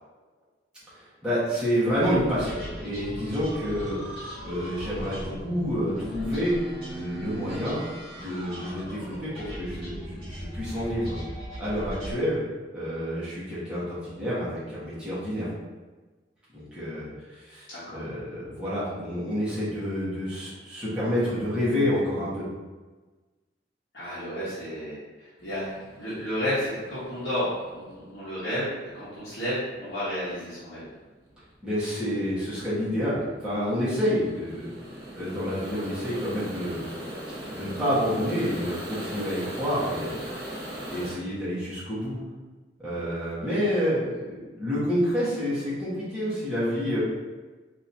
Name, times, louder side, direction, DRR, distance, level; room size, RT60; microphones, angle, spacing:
voice 1, 0.9-6.6 6.9-7.8 8.1-11.2 11.6-12.4 12.7-15.5 16.5-17.1 17.4-22.5 31.6-34.7 35.2-36.8 37.5-40.2 40.9-42.2 42.8-47.0, equal, 5° right, -12 dB, 1.3 m, -28 dB
sound 1, 1.8-12.1, equal, 30° right, 1.4 m, -38 dB
voice 2, 17.7-18.1 23.9-30.9, equal, 65° left, -13 dB, 1.2 m, -32 dB
sound 2, 25.4-41.1, equal, 60° right, 1.1 m, -39 dB
4.0 x 2.8 x 2.6 m, 1.3 s
head